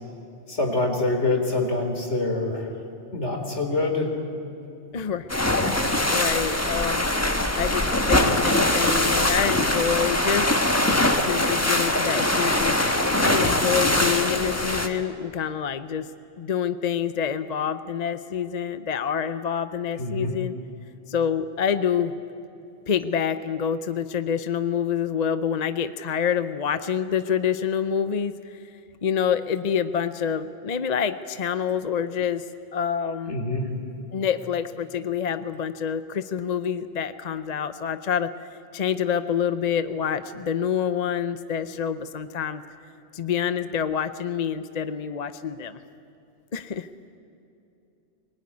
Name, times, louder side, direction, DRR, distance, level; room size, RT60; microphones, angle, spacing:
voice 1, 0.5-2.7 3.1-4.1 20.0-20.3 33.3-33.7, left 2 dB, 75° left, 4 dB, 3.6 m, -25 dB
voice 2, 4.9-5.3 5.8-7.1 7.5-10.6 11.2-12.8 13.2-16.1 16.4-20.5 21.1-22.1 22.9-28.6 29.0-32.4 32.7-33.4 34.1-42.6 43.1-45.8 46.5-46.9, left 8 dB, 45° left, 11 dB, 0.7 m, -27 dB
sound 1, 5.3-14.9, left 1 dB, 15° left, 1.3 m, -22 dB
24.0 x 19.5 x 9.6 m, 2.7 s
omnidirectional pair, 1.2 m